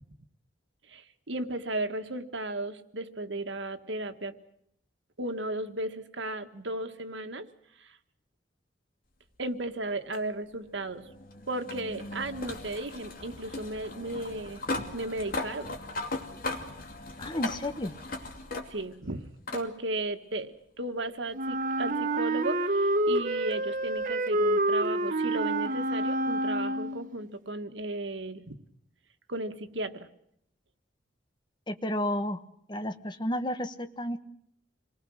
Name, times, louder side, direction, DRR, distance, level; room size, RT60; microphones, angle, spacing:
voice 1, 0.9-4.4 5.2-7.5 7.8-8.0 9.4-11.1 11.5-15.7 18.7-28.6 29.3-30.1, right 2 dB, 90° right, 7 dB, 1.7 m, -35 dB
sound 1, 10.1-19.0 19.5-19.7 21.0-21.1 24.0-24.1, left 2 dB, 50° left, 2.7 m, -38 dB
voice 2, 17.2-17.9 31.7-32.4 32.7-34.2, left 1 dB, 25° left, 8 dB, 1.2 m, -31 dB
Wind instrument woodwind instrument, 21.3-27.2, right 1 dB, 45° right, 1.1 m, -28 dB
27.0 x 19.5 x 6.5 m, 0.73 s
head